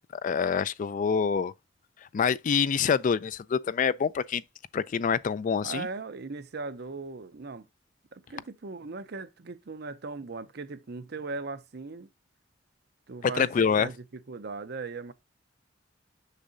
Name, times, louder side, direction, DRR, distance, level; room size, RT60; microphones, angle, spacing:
voice 1, 0.0-1.5 2.1-4.4 4.7-5.9 13.2-13.9, left 6 dB, 40° left, 0.3 m, -26 dB
voice 2, 5.6-7.7 8.1-12.1 13.1-15.1, right 3 dB, 55° right, 0.6 m, -38 dB
6.6 x 6.4 x 2.6 m
head